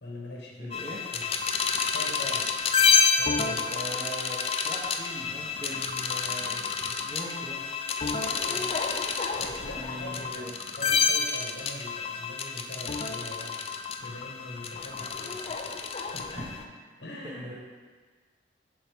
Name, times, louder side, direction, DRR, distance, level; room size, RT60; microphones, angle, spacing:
voice 1, 0.0-1.3 1.8-2.5 3.0-3.7 8.5-8.8 9.4-10.5 10.8-15.7 16.0-16.4 17.0-17.4, left 1 dB, 65° left, -1 dB, 0.9 m, -42 dB
voice 2, 0.6-1.0 3.7-6.6 7.0-7.6 9.8-10.5 16.3-16.7 17.2-17.5, right 1 dB, 25° right, -6 dB, 0.7 m, -40 dB
sound 1, 0.7-16.6, left 5 dB, 35° left, 0.4 m, -29 dB
7.1 x 4.9 x 3.5 m, 1.5 s
head